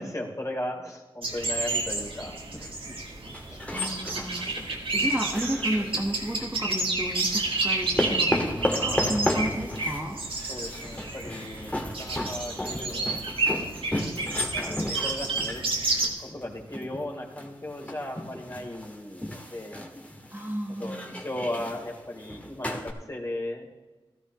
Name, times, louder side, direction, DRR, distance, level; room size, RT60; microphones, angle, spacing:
voice 1, 0.0-3.0 3.5-3.6 10.5-13.2 14.4-15.6 16.2-19.8 20.8-21.0 21.2-23.7, left 1 dB, 35° left, -1 dB, 3.5 m, -36 dB
sound 1, 1.2-16.1, right 3 dB, 70° right, 1.9 m, -30 dB
sound 2, 3.3-6.4 7.2-22.9, left 1 dB, 15° left, 2.1 m, -34 dB
voice 2, 3.7-10.2 20.3-21.1, right 1 dB, 20° right, 1 dB, 1.5 m, -33 dB
16.0 x 13.0 x 3.1 m, 1.2 s
cardioid pair, 45°, 10 cm